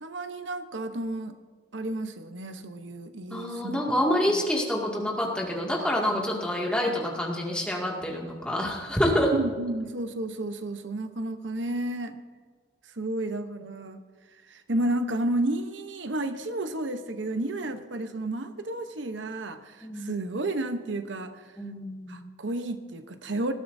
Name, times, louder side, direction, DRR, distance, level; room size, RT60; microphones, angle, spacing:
voice 1, 0.0-1.4 1.7-3.8 4.3-4.4 9.3-12.2 13.0-14.0 14.4-21.5 22.1-23.5, right 1 dB, 85° right, 8 dB, 0.9 m, -32 dB
voice 2, 3.3-9.4 19.8-20.2 21.6-22.3, equal, 5° left, -2 dB, 2.2 m, -27 dB
19.5 x 13.0 x 2.7 m, 1.5 s
head